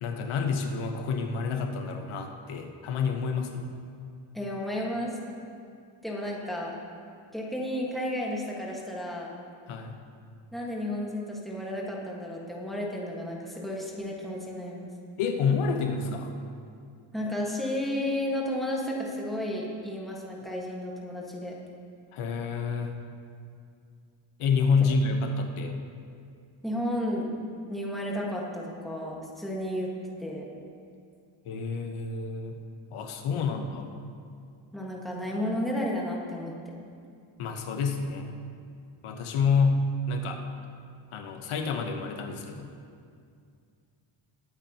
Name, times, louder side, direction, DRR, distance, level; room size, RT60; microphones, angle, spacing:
voice 1, 0.0-3.7 9.7-10.0 15.2-16.3 22.1-23.0 24.4-25.8 31.4-32.6 32.9-33.9 37.4-38.4 39.0-40.4 41.1-42.7, left 4 dB, 90° left, 4 dB, 1.1 m, -28 dB
voice 2, 4.3-5.2 6.0-6.7 7.3-9.3 10.5-14.9 17.1-21.5 26.6-27.3 27.7-29.9 30.2-30.4 34.7-36.5, left 1 dB, ahead, -3 dB, 1.5 m, -32 dB
20.5 x 8.8 x 2.9 m, 2.3 s
wide cardioid pair, 155°, 48 cm